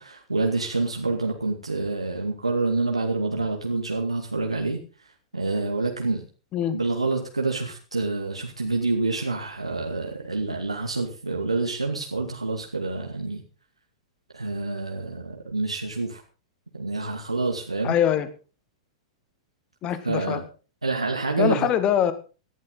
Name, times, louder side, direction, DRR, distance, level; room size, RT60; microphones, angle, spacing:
voice 1, 0.0-4.8 5.3-6.2 6.7-13.4 14.3-16.2 16.7-17.9 20.0-20.4 20.8-21.7, right 3 dB, 85° right, 1 dB, 2.3 m, -27 dB
voice 2, 17.8-18.3 19.8-20.4 21.4-22.1, left 10 dB, 30° left, 12 dB, 1.9 m, -23 dB
17.5 x 12.0 x 4.0 m, 0.35 s
figure-of-eight pair, 100°, 3 cm